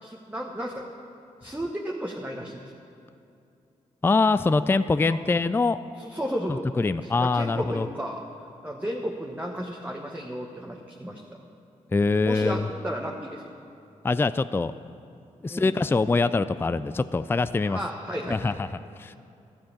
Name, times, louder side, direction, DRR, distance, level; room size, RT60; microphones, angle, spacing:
voice 1, 0.0-0.8 1.4-2.8 5.1-5.2 6.0-6.6 7.0-8.2 8.6-11.2 12.2-13.5 15.5-15.8 17.6-18.5, equal, 10° right, -1 dB, 1.2 m, -33 dB
voice 2, 4.0-5.8 6.8-7.9 11.9-12.7 14.0-14.7 15.4-17.8 18.3-18.7 19.0-19.1, left 3 dB, 15° left, 14 dB, 0.3 m, -23 dB
12.5 x 7.7 x 7.0 m, 2.6 s
cardioid pair, 55°, 14 cm